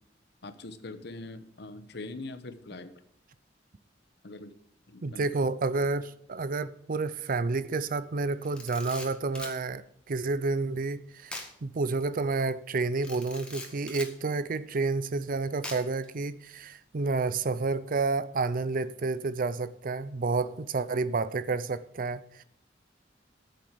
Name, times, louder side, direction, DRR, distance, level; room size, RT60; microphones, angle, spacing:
voice 1, 0.4-2.9 4.2-4.5 4.9-5.4, left 2 dB, 65° left, 1.0 m, -42 dB
voice 2, 5.0-11.4 11.6-22.4, right 3 dB, 50° right, 0.5 m, -30 dB
Camera, 8.4-9.6 11.3-11.5 11.9-12.0 13.0-14.1 15.6-16.1, left 2 dB, 5° left, 1.8 m, -41 dB
9.1 x 7.7 x 6.8 m
head